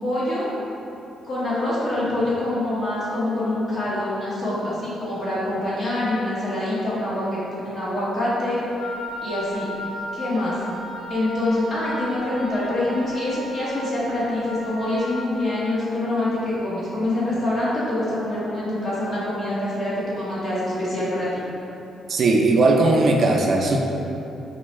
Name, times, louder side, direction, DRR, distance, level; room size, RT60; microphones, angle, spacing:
voice 1, 0.0-0.5 1.2-7.4 7.6-8.6 9.2-9.7 10.1-10.6 11.1-21.4, left 1 dB, 40° left, -9 dB, 1.2 m, -25 dB
Wind instrument woodwind instrument, 8.8-15.3, equal, 60° left, 0.7 m, -35 dB
voice 2, 22.1-23.8, right 2 dB, 50° right, 1 dB, 0.3 m, -18 dB
4.5 x 2.1 x 3.1 m, 2.9 s
cardioid pair, 90°, 0 cm